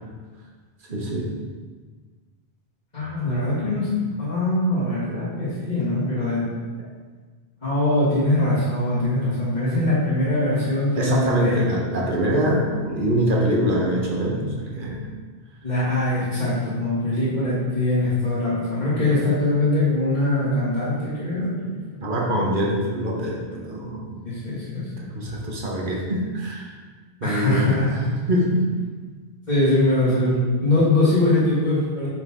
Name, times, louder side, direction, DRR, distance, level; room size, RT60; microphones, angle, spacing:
voice 1, 0.9-1.4 5.1-5.3 10.9-15.1 22.0-24.2 25.0-26.7 27.2-28.6, equal, 55° right, -2 dB, 1.2 m, -24 dB
voice 2, 2.9-3.9 4.2-6.6 7.6-11.7 15.6-22.0 24.2-24.9 27.2-27.9 29.5-32.1, left 1 dB, 45° left, -14 dB, 2.2 m, -22 dB
6.8 x 4.6 x 3.6 m, 1.4 s
omnidirectional pair, 1.1 m